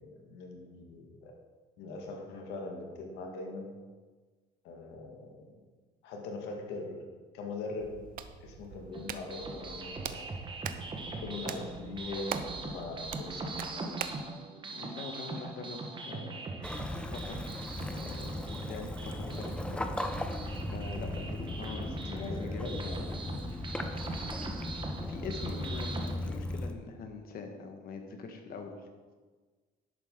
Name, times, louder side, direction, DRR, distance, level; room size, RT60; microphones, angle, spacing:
voice 1, 0.0-1.3 1.8-3.7 4.6-5.5 6.0-7.0 7.3-7.9 8.4-10.2 11.2-14.0 22.1-23.4, left 3 dB, 90° left, 1 dB, 1.8 m, -41 dB
Hands, 7.8-14.3, right 9 dB, 55° right, 0.7 m, -43 dB
sound 1, 8.9-26.1, right 3 dB, 30° right, 1.3 m, -41 dB
voice 2, 14.7-16.4 17.1-17.5 17.8-20.0 20.7-22.7 24.7-28.9, left 4 dB, 60° left, 4 dB, 1.6 m, -43 dB
Waves surf / Splash splatter / Trickle dribble, 16.6-26.7, left 1 dB, 5° left, 0.7 m, -37 dB
11.0 x 8.0 x 3.9 m, 1.4 s
cardioid pair, 110°, 17 cm